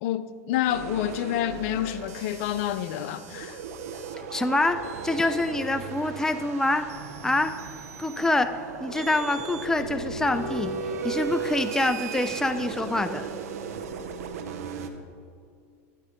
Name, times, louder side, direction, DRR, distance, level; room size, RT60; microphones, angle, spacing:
voice 1, 0.0-3.6, left 11 dB, 65° left, 0.6 m, -28 dB
sound 1, 0.7-14.9, right 5 dB, 85° right, 1.0 m, -36 dB
voice 2, 4.3-6.9 7.2-7.5 8.0-8.5 8.8-10.7 11.0-13.3, left 2 dB, 5° left, 0.5 m, -25 dB
14.5 x 11.0 x 3.7 m
hypercardioid pair, 105°, 8 cm